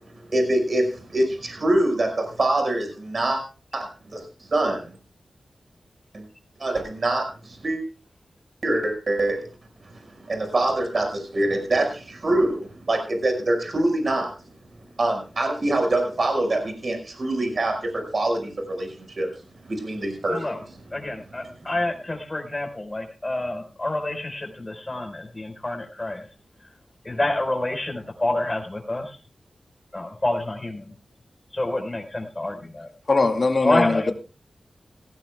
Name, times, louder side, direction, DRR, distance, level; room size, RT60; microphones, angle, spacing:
voice 1, 0.3-3.4 3.7-3.9 4.1-4.2 4.5-4.9 6.1-6.2 6.6-7.8 8.6-9.4 9.9-14.3 15.0-19.3 19.7-20.4, right 1 dB, 55° right, 3 dB, 5.4 m, -24 dB
voice 2, 20.9-26.3 27.0-29.2 29.9-30.9 31.5-32.9 33.6-34.0, left 2 dB, 25° left, 3 dB, 4.7 m, -28 dB
voice 3, 33.1-34.1, left 3 dB, 50° left, 4 dB, 2.3 m, -20 dB
18.0 x 16.0 x 2.3 m, 0.35 s
cardioid pair, 55°, 0 cm